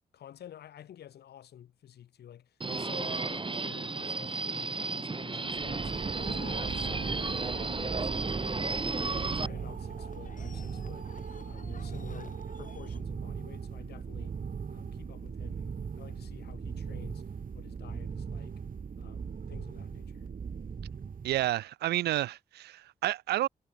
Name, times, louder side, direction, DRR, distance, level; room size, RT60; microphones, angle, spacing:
voice 1, 0.1-11.2 11.4-14.4 14.7-17.3 17.5-18.6 19.0-20.3, left 10 dB, 80° left, 7.9 m, -51 dB
Subway metro underground, 2.6-9.5, right 3 dB, 30° right, 2.3 m, -33 dB
sound 1, 2.9-13.0, left 5 dB, 50° left, 6.5 m, -52 dB
sound 2, 5.5-21.5, right 6 dB, 60° right, 4.9 m, -39 dB
voice 2, 21.2-23.5, right 14 dB, 85° right, 0.5 m, -30 dB
supercardioid pair, 50°, 16 cm